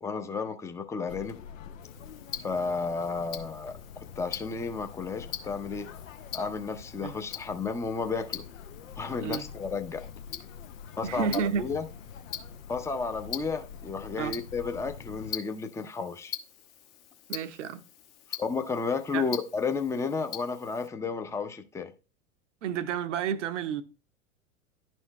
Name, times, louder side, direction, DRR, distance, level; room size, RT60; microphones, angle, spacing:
voice 1, 0.0-1.4 2.4-3.8 4.2-5.9 6.3-8.4 9.0-10.0 11.0-11.9 12.7-16.3 18.4-21.9, left 4 dB, 5° left, 0.6 m, -32 dB
sound 1, 1.1-15.3, left 7 dB, 75° left, 0.7 m, -46 dB
Tick-tock, 1.8-20.9, left 10 dB, 40° left, 1.0 m, -44 dB
voice 2, 11.0-11.6 14.2-14.4 17.3-17.8 19.1-19.4 22.6-23.8, right 7 dB, 65° right, 0.8 m, -31 dB
11.0 x 4.5 x 3.0 m
figure-of-eight pair, 90°, 40 cm